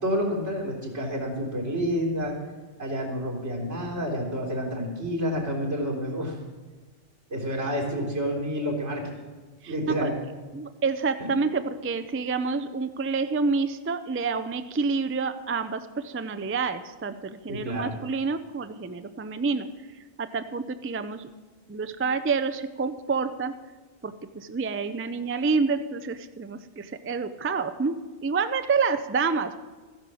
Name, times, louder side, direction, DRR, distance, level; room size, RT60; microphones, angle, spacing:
voice 1, 0.0-2.3 2.8-6.4 7.3-9.2 9.7-10.1 11.2-11.3 17.5-18.0, equal, 85° right, -3 dB, 3.9 m, -29 dB
voice 2, 10.5-19.7 20.2-21.3 21.7-23.5 24.0-29.6, right 4 dB, 20° right, 10 dB, 0.3 m, -28 dB
14.5 x 10.5 x 6.2 m, 1.3 s
omnidirectional pair, 1.1 m